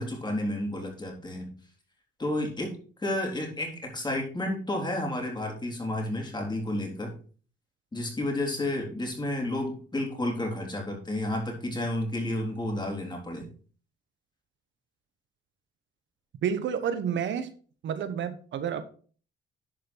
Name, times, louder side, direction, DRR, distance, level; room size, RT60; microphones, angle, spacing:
voice 1, 0.0-1.5 2.2-7.1 7.9-13.5, left 1 dB, 20° left, 0 dB, 3.8 m, -31 dB
voice 2, 16.4-17.5 17.8-18.8, right 8 dB, 70° right, 11 dB, 1.0 m, -29 dB
11.0 x 5.2 x 4.5 m, 0.41 s
cardioid pair, 90°, 20 cm